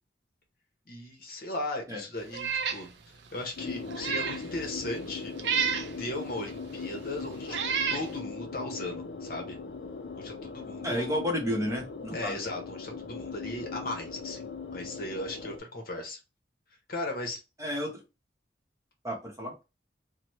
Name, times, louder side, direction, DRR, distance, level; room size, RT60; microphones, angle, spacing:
voice 1, 0.9-2.9 3.3-5.3 6.0-9.6 10.1-11.2 12.1-14.4 14.7-16.2 16.9-17.4, left 2 dB, 55° left, 2 dB, 0.8 m, -37 dB
Meow, 2.3-2.8 3.3-3.4 3.9-4.4 5.4-5.9 6.8-6.9 7.5-8.1, right 6 dB, 75° right, 0.4 m, -30 dB
sound 1, 3.6-15.6, left 4 dB, 85° left, 0.4 m, -40 dB
voice 2, 10.8-12.4 17.6-18.0 19.0-19.5, equal, 20° right, -1 dB, 0.8 m, -31 dB
2.9 x 2.1 x 3.0 m, 0.27 s
head